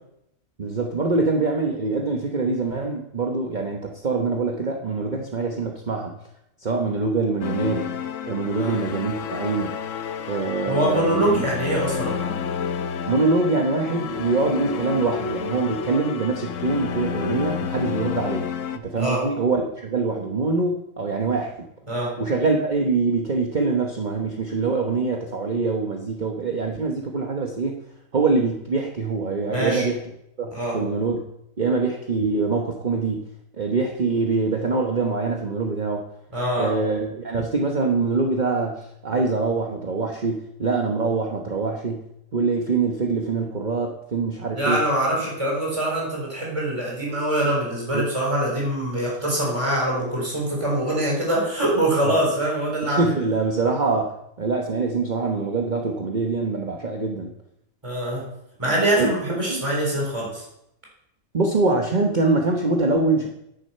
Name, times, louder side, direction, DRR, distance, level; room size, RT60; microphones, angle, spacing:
voice 1, 0.6-6.1 6.6-7.9 8.2-9.8 10.3-11.4 13.1-18.5 18.7-21.5 22.2-27.8 28.1-30.0 30.4-31.2 31.6-33.2 33.6-36.0 36.6-42.0 42.3-44.8 45.2-45.3 47.9-48.1 52.0-52.2 52.9-54.1 54.4-57.3 59.0-59.7 61.3-63.3, right 3 dB, 40° right, 1 dB, 1.1 m, -24 dB
sound 1, 7.4-18.8, left 7 dB, 75° left, 1.1 m, -30 dB
voice 2, 10.7-12.4 19.0-19.2 21.9-22.1 29.5-29.9 30.5-30.8 36.3-36.7 44.5-53.1 57.8-58.2 58.6-60.4, right 1 dB, 20° right, -3 dB, 4.2 m, -24 dB
9.9 x 9.8 x 5.5 m, 0.80 s
omnidirectional pair, 1.4 m